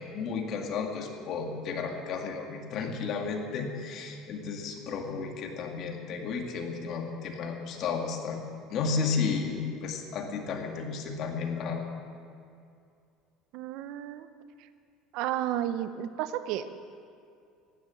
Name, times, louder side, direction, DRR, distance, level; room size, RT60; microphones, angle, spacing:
voice 1, 0.0-8.4 8.7-11.9, left 5 dB, 55° left, 3 dB, 2.1 m, -33 dB
voice 2, 13.5-14.3 14.6-14.7 15.1-16.7, right 11 dB, 70° right, 11 dB, 0.8 m, -32 dB
15.5 x 10.5 x 7.5 m, 2.4 s
supercardioid pair, 120°, 0 cm